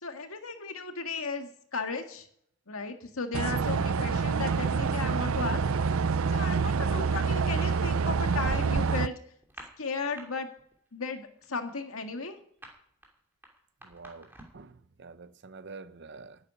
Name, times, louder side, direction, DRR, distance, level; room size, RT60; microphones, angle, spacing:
voice 1, 0.0-2.3 2.7-5.6 6.3-9.1 9.8-10.5 10.9-12.4, left 4 dB, 85° left, 1.9 m, -35 dB
sound 1, 3.3-9.1, right 5 dB, 85° right, 0.5 m, -27 dB
sound 2, 9.4-10.3 10.6-10.9 11.2-14.7, right 1 dB, 10° right, 2.7 m, -50 dB
voice 2, 13.8-16.4, right 4 dB, 55° right, 0.8 m, -47 dB
11.0 x 8.6 x 9.8 m
head